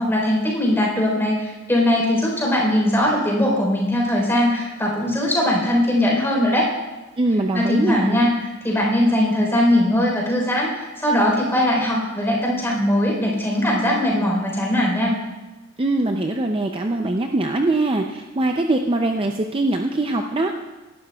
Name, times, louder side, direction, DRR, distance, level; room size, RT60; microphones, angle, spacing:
voice 1, 0.0-6.7 7.5-8.3 8.6-15.2, left 1 dB, 10° left, -2 dB, 3.8 m, -20 dB
voice 2, 7.2-8.3 15.8-20.6, right 2 dB, 25° right, 4 dB, 0.5 m, -22 dB
18.5 x 11.5 x 2.3 m, 1.2 s
head